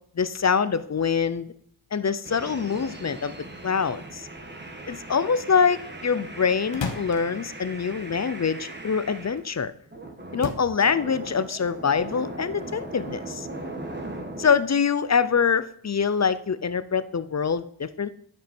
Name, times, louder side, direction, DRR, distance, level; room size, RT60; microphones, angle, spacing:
voice 1, 0.2-1.5 1.9-3.4 3.6-4.3 4.9-9.7 10.3-13.5 14.4-18.1, left 6 dB, 35° left, 14 dB, 0.7 m, -24 dB
sound 1, 2.2-9.4 9.9-14.7, right 2 dB, 20° right, 1.7 m, -39 dB
sound 2, 6.7-9.0 9.4-9.8 10.1-11.3 11.5-12.7, left 5 dB, 60° left, 1.4 m, -36 dB
9.0 x 7.5 x 4.5 m, 0.64 s
cardioid pair, 45°, 50 cm